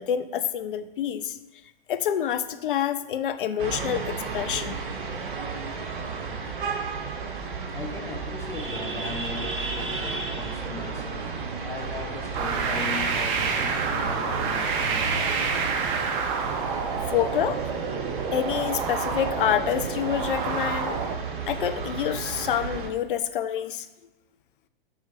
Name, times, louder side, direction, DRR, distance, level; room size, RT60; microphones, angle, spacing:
voice 1, 0.0-1.3 1.9-4.8 17.1-17.6 18.3-21.0 21.5-23.9, left 9 dB, 60° left, 11 dB, 0.6 m, -27 dB
sound 1, 3.6-22.9, right 4 dB, 55° right, 1.1 m, -33 dB
voice 2, 7.7-15.4, left 4 dB, 10° left, 0 dB, 0.6 m, -38 dB
sound 2, 12.3-21.1, right 5 dB, 35° right, 0.7 m, -28 dB
4.9 x 4.3 x 5.8 m, 1.0 s
figure-of-eight pair, 110°, 30 cm